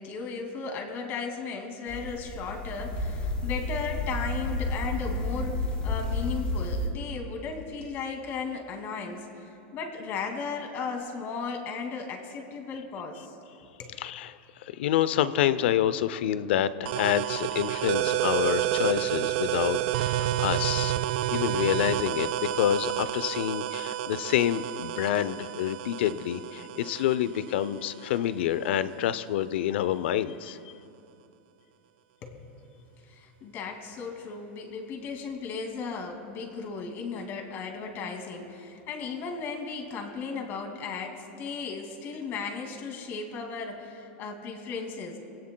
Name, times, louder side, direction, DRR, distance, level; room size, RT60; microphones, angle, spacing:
voice 1, 0.0-9.5 9.7-13.3 13.8-14.0 32.2-32.5 33.1-45.2, left 5 dB, 40° left, 3 dB, 2.3 m, -36 dB
sound 1, 1.9-6.9, left 2 dB, 20° left, 3.6 m, -31 dB
voice 2, 14.0-20.9 21.3-30.7, left 11 dB, 75° left, 15 dB, 0.6 m, -28 dB
sound 2, 16.9-28.2, right 13 dB, 60° right, 0.4 m, -30 dB
23.5 x 17.0 x 2.3 m, 2.7 s
supercardioid pair, 140°, 6 cm